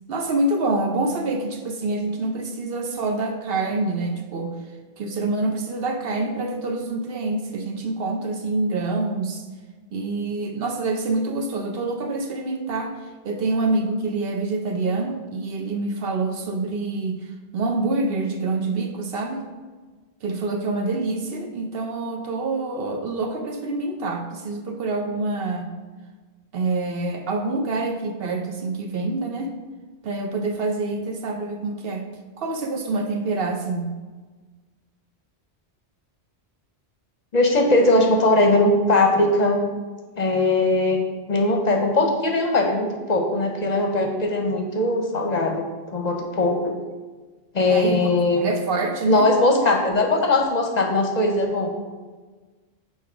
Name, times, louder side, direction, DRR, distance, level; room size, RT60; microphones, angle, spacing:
voice 1, 0.1-4.5 5.0-9.4 9.9-12.9 13.2-19.5 20.2-25.7 26.5-29.5 30.0-32.0 32.4-33.9 47.7-48.1 48.4-49.3, right 2 dB, 65° right, 4 dB, 0.8 m, -26 dB
voice 2, 37.3-39.6 40.2-41.0 41.3-46.7 47.5-48.5 49.1-51.7, left 2 dB, 45° left, 2 dB, 0.7 m, -20 dB
5.6 x 4.2 x 4.7 m, 1.3 s
omnidirectional pair, 1.1 m